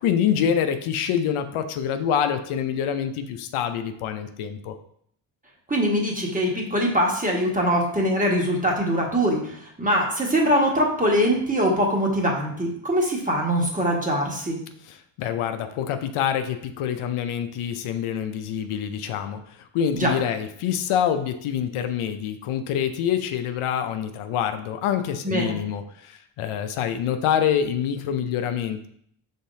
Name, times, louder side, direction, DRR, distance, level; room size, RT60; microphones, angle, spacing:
voice 1, 0.0-4.8 14.8-28.9, left 8 dB, 85° left, 8 dB, 0.6 m, -26 dB
voice 2, 5.7-9.5 9.8-14.6 19.9-20.1 25.2-25.5, equal, 15° right, -1 dB, 1.4 m, -22 dB
5.5 x 3.6 x 2.7 m, 0.66 s
cardioid pair, 60°, 49 cm